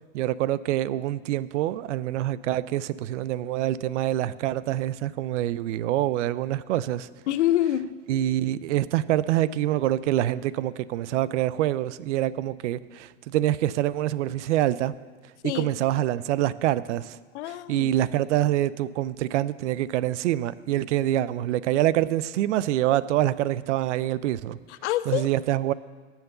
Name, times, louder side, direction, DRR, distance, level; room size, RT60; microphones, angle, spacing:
voice 1, 0.1-7.1 8.1-14.9 15.4-17.2 17.7-24.6 25.1-25.7, right 13 dB, 75° right, 18 dB, 0.5 m, -25 dB
voice 2, 7.3-8.0 15.4-15.7 17.3-17.9 24.7-25.3, left 13 dB, 70° left, 14 dB, 0.7 m, -26 dB
9.5 x 7.2 x 6.7 m, 1.4 s
hypercardioid pair, 120°, 36 cm